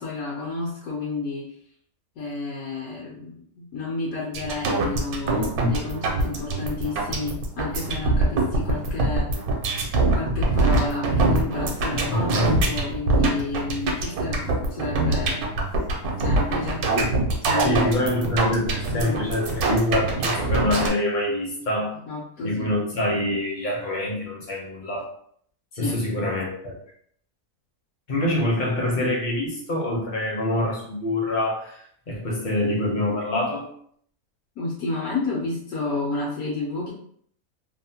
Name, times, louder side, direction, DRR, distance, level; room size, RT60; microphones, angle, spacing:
voice 1, 0.0-1.5 2.2-9.3 10.1-15.4 16.2-16.8 17.4-17.9 18.9-19.2 22.1-22.7 25.7-26.0 34.6-36.9, left 3 dB, 75° left, -5 dB, 1.1 m, -31 dB
sound 1, 4.3-20.9, right 2 dB, 80° right, 1.1 m, -24 dB
voice 2, 12.1-12.5 17.6-22.0 22.4-25.1 25.8-26.7 28.1-33.7, left 1 dB, 50° left, -3 dB, 0.6 m, -25 dB
2.8 x 2.0 x 2.7 m, 0.63 s
omnidirectional pair, 1.5 m